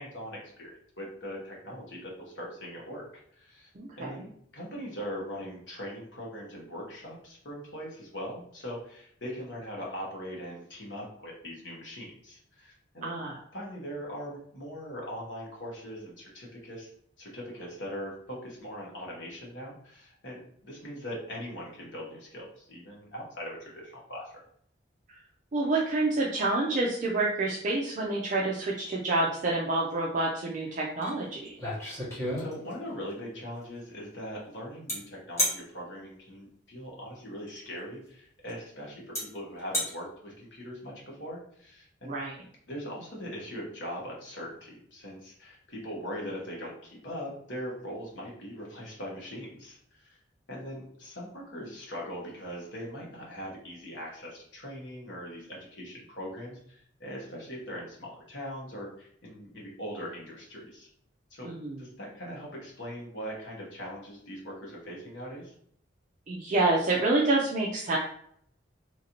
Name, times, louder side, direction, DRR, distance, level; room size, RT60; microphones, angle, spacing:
voice 1, 0.0-3.7 4.0-4.3 4.5-13.2 13.5-16.9 17.2-24.3 32.4-42.2 42.7-50.2 50.5-60.9 61.3-61.5 61.8-65.5, equal, 65° left, -3 dB, 1.1 m, -41 dB
voice 2, 3.8-4.2 13.0-13.4 25.5-31.5 42.0-42.3 61.4-61.9 66.3-68.0, right 2 dB, 40° right, -3 dB, 0.4 m, -28 dB
sound 1, 31.0-31.1 31.5-32.9 34.9-35.0 35.4-35.6 37.5-37.6 38.5-38.6 39.1-39.2 39.6-39.9, equal, 15° left, 1.0 m, -30 dB
3.1 x 2.6 x 2.9 m, 0.67 s
head